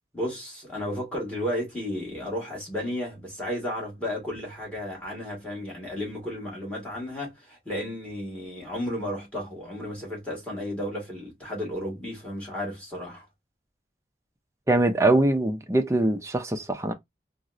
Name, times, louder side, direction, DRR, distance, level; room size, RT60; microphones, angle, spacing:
voice 1, 0.1-13.2, left 1 dB, 5° left, 1.3 m, -33 dB
voice 2, 14.7-16.9, right 2 dB, 15° right, 0.4 m, -22 dB
3.9 x 2.0 x 2.3 m
head